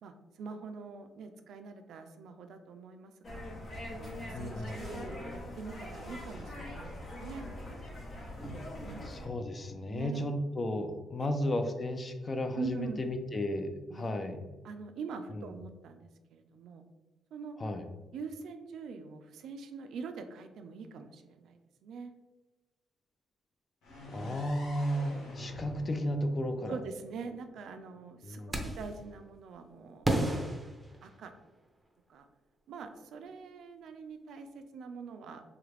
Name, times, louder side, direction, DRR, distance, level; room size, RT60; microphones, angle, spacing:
voice 1, 0.0-3.5 4.0-7.5 8.8-9.2 9.9-10.3 11.2-11.3 12.5-13.0 13.9-14.2 14.6-16.9 17.3-17.6 18.1-22.1 26.7-30.1 31.0-31.3 32.1-32.2 32.7-35.4, right 5 dB, 75° right, 7 dB, 0.3 m, -44 dB
sound 1, 3.2-9.3, left 1 dB, 50° left, 0.9 m, -42 dB
voice 2, 4.3-4.8 9.0-14.4 15.3-15.5 17.6-17.9 24.1-26.8 28.2-28.6, left 1 dB, 30° left, 7 dB, 0.4 m, -34 dB
sound 2, 23.8-27.7, left 1 dB, 80° left, 0.9 m, -47 dB
sound 3, 28.5-29.0 30.0-31.6, right 1 dB, 15° right, 0.6 m, -32 dB
3.2 x 2.4 x 3.2 m, 1.2 s
cardioid pair, 90°, 0 cm